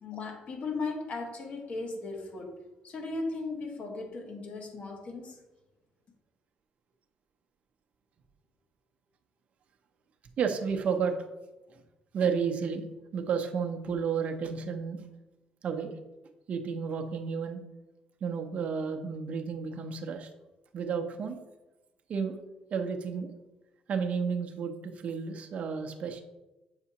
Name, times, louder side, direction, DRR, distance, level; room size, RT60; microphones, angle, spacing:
voice 1, 0.0-2.5 2.8-5.4, left 3 dB, 50° left, 3 dB, 1.3 m, -37 dB
voice 2, 10.4-11.2 12.1-12.8 13.1-15.0 15.6-15.9 16.5-17.6 18.2-20.3 20.7-21.4 22.1-22.4 22.7-23.3 23.9-26.2, right 6 dB, 55° right, 4 dB, 0.7 m, -31 dB
7.2 x 4.8 x 2.9 m, 1.1 s
cardioid pair, 100°, 3 cm